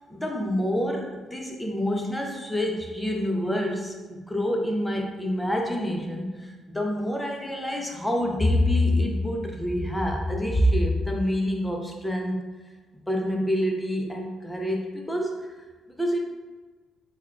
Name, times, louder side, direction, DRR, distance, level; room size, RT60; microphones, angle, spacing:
voice 1, 0.1-12.4 13.1-15.5 16.0-16.2, left 1 dB, 5° left, 1 dB, 0.6 m, -26 dB
3.4 x 2.3 x 3.5 m, 1.3 s
cardioid pair, 90°, 0 cm